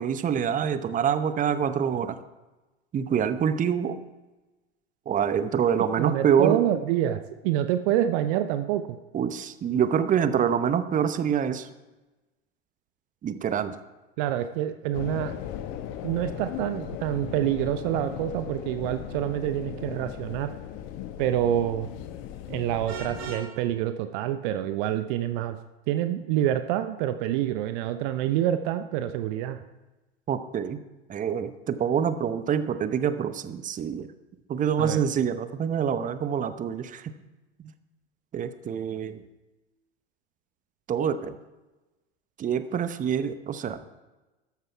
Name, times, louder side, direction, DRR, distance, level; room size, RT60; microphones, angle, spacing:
voice 1, 0.0-2.2 2.9-4.0 5.1-6.6 9.1-11.7 13.2-13.8 30.3-30.8 31.1-34.1 34.5-37.1 38.3-39.2 40.9-41.4 42.4-43.8, right 8 dB, 25° right, 12 dB, 0.9 m, -26 dB
voice 2, 5.9-9.0 14.2-15.3 16.0-20.5 21.2-21.9 22.5-25.6 25.9-29.6 34.8-35.0, right 12 dB, 50° right, 10 dB, 0.8 m, -27 dB
sound 1, 14.9-23.3, left 11 dB, 50° left, 1.2 m, -37 dB
Vehicle horn car horn honking, 22.9-23.5, right 6 dB, 65° right, 3.0 m, -38 dB
13.5 x 12.0 x 4.7 m, 1.1 s
figure-of-eight pair, 80°, 32 cm